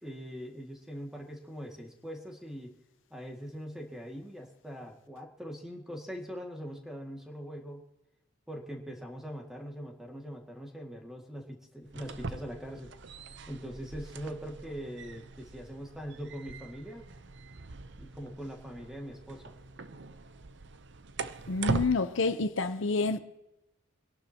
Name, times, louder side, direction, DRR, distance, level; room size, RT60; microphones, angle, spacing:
voice 1, 0.0-2.7 3.1-7.8 8.5-12.9 13.5-17.0 18.0-19.5, equal, ahead, 2.0 m, -42 dB
sound 1, 11.8-21.9, right 3 dB, 60° right, 0.7 m, -40 dB
voice 2, 21.5-23.2, left 3 dB, 70° left, 0.7 m, -28 dB
25.5 x 12.0 x 2.9 m
head